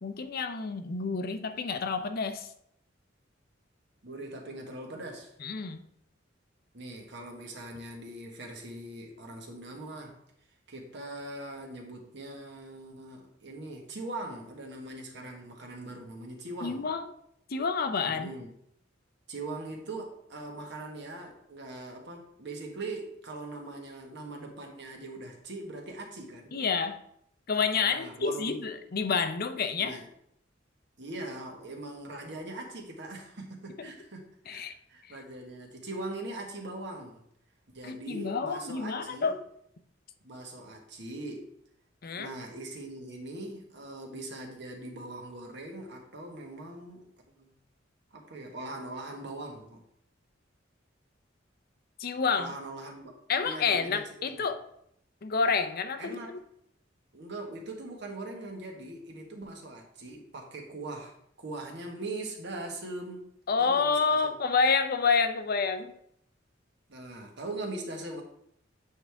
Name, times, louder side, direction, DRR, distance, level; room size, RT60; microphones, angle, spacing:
voice 1, 0.0-2.5 5.4-5.8 16.6-17.1 17.5-18.3 26.5-27.0 27.5-30.0 33.8-33.9 34.5-34.7 37.8-39.4 42.0-42.3 52.0-52.5 53.3-54.6 55.2-56.4 63.5-65.9, left 5 dB, 50° left, 9 dB, 0.6 m, -29 dB
voice 2, 4.0-5.3 6.7-10.2 10.7-16.9 18.1-18.5 19.3-26.5 27.9-28.7 29.8-30.1 31.0-37.2 37.7-39.4 40.2-41.5 42.1-47.0 47.4-47.5 48.1-49.8 52.3-53.1 53.4-54.4 56.0-56.3 57.1-63.2 63.6-64.3 66.9-68.2, right 2 dB, 65° right, 1 dB, 1.4 m, -41 dB
8.2 x 4.8 x 3.5 m, 0.72 s
head